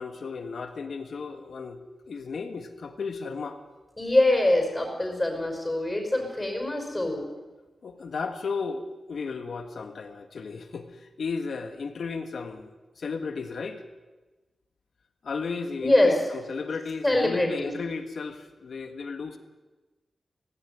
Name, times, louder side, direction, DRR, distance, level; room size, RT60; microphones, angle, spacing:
voice 1, 0.0-1.8 2.1-3.6 7.8-12.7 13.0-13.8 15.2-19.4, left 4 dB, 70° left, 7 dB, 1.8 m, -34 dB
voice 2, 4.0-7.2 15.8-16.2 17.0-17.7, left 1 dB, 15° left, 3 dB, 5.5 m, -24 dB
17.5 x 16.0 x 9.5 m, 1.2 s
wide cardioid pair, 140°, 0 cm